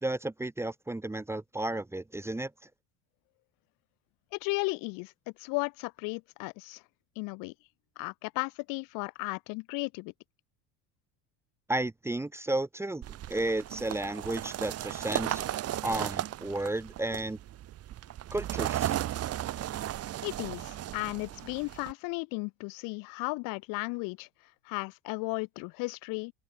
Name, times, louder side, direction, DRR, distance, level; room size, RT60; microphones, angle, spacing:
voice 1, 0.0-2.5 11.7-15.4 15.8-17.4 18.3-18.9, right 2 dB, 5° right, 1.7 m, -33 dB
voice 2, 4.3-5.1 5.4-6.8 7.2-7.5 8.0-10.1 20.2-24.3 24.6-26.3, left 28 dB, 65° left, 4.4 m, -35 dB
sound 1, 13.0-21.9, right 13 dB, 45° right, 4.2 m, -35 dB
open air
supercardioid pair, 125°, 35 cm